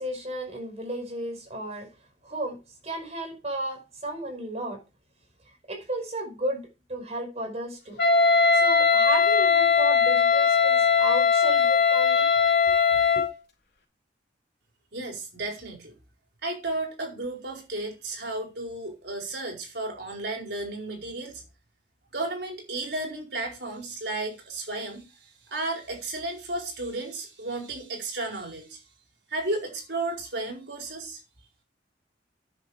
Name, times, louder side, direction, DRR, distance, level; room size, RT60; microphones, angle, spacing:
voice 1, 0.0-1.9 2.2-4.8 5.7-8.0 8.5-12.3 12.7-12.8 13.1-13.3, right 1 dB, 40° right, 5.4 m, -33 dB
Wind instrument woodwind instrument, 8.0-13.3, left 5 dB, 65° left, 3.8 m, -20 dB
voice 2, 14.9-15.9 16.4-21.4 22.1-28.8 29.3-31.2, right 2 dB, 70° right, 4.6 m, -33 dB
10.5 x 7.5 x 4.9 m
head